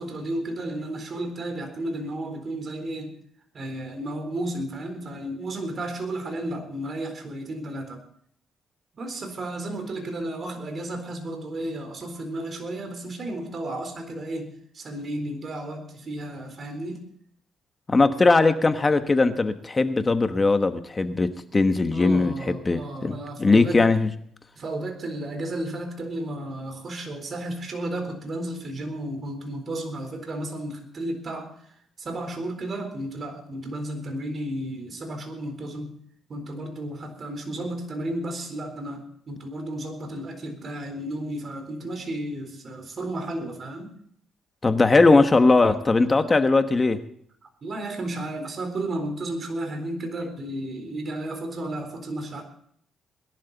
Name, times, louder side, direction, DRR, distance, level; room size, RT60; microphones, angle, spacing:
voice 1, 0.0-3.2 3.5-8.0 8.9-17.1 21.9-23.8 24.6-35.9 36.3-44.0 47.4-52.4, right 1 dB, 45° right, 5 dB, 3.9 m, -33 dB
voice 2, 17.9-24.1 44.6-47.0, left 3 dB, 25° left, 9 dB, 1.2 m, -20 dB
20.5 x 11.5 x 4.1 m, 0.64 s
cardioid pair, 90°, 0 cm